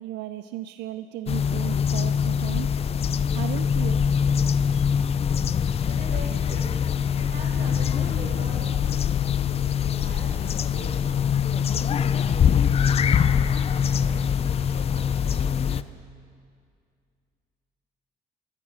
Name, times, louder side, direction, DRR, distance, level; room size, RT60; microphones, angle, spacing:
voice 1, 0.0-2.7 3.3-4.1, right 14 dB, 90° right, 12 dB, 0.4 m, -35 dB
sound 1, 1.3-15.8, left 7 dB, 35° left, 0.5 m, -23 dB
voice 2, 5.8-9.1 9.4-13.5 13.9-15.8, right 3 dB, 50° right, 2 dB, 3.9 m, -43 dB
15.5 x 13.5 x 6.2 m, 2.2 s
cardioid pair, 110°, 17 cm